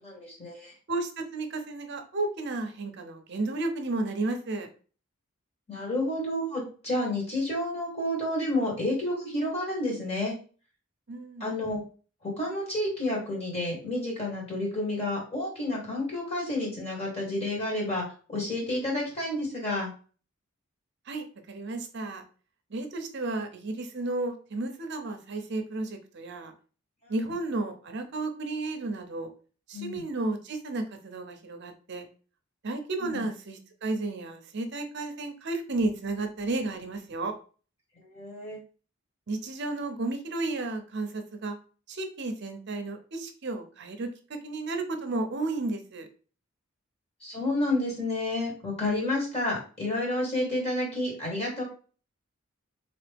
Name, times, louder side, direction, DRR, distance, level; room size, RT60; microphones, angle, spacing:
voice 1, 0.0-0.7 5.7-10.3 11.4-11.8 12.2-19.9 27.0-27.2 29.7-30.0 33.0-33.2 38.0-38.6 47.2-51.6, left 1 dB, 30° left, -2 dB, 1.5 m, -30 dB
voice 2, 0.9-4.7 11.1-11.5 21.1-22.2 22.7-26.5 27.1-29.3 29.7-32.0 32.6-37.3 39.3-41.6 41.9-46.1, right 2 dB, 55° right, 6 dB, 0.6 m, -33 dB
3.9 x 3.0 x 3.4 m, 0.39 s
head